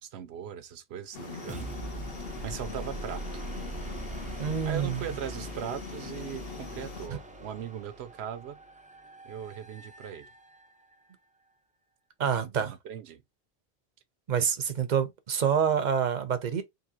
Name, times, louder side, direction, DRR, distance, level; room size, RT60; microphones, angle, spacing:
voice 1, 0.0-1.7 2.4-3.4 4.6-8.6 9.2-10.3 12.5-13.2, right 9 dB, 80° right, 0.9 m, -39 dB
sound 1, 1.1-7.1, left 6 dB, 65° left, 0.9 m, -42 dB
sound 2, 1.2-10.9, right 2 dB, 15° right, 0.3 m, -42 dB
voice 2, 4.4-5.0 7.1-7.2 12.2-12.7 14.3-16.6, right 7 dB, 50° right, 0.7 m, -27 dB
3.8 x 2.6 x 2.7 m
omnidirectional pair, 1.1 m